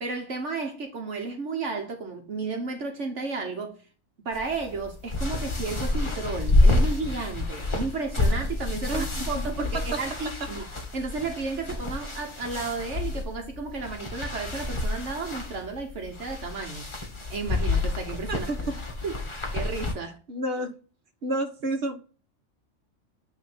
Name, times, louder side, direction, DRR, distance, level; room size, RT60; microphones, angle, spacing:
voice 1, 0.0-3.8 4.2-10.7 10.9-16.9 17.3-18.5 19.0-20.2, right 4 dB, 65° right, 1.4 m, -33 dB
sound 1, 4.3-19.9, left 2 dB, 25° left, 1.4 m, -28 dB
voice 2, 18.3-18.8 20.3-20.7 21.2-22.0, right 2 dB, 50° right, 1.4 m, -29 dB
9.6 x 3.2 x 4.3 m
omnidirectional pair, 1.4 m